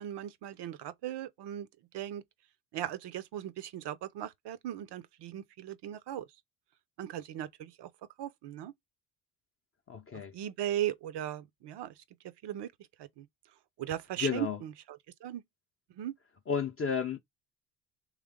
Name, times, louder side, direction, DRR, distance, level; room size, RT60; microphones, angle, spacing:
voice 1, 0.0-1.7 1.9-2.2 2.7-6.3 7.0-7.9 8.2-8.7 10.3-11.9 12.4-12.7 13.0-13.3 13.8-15.4 16.0-16.1, right 12 dB, 55° right, 0.7 m, -38 dB
voice 2, 9.9-10.3 14.2-14.6 16.5-17.2, left 6 dB, 30° left, 0.6 m, -32 dB
3.3 x 3.2 x 3.6 m
supercardioid pair, 65°, 49 cm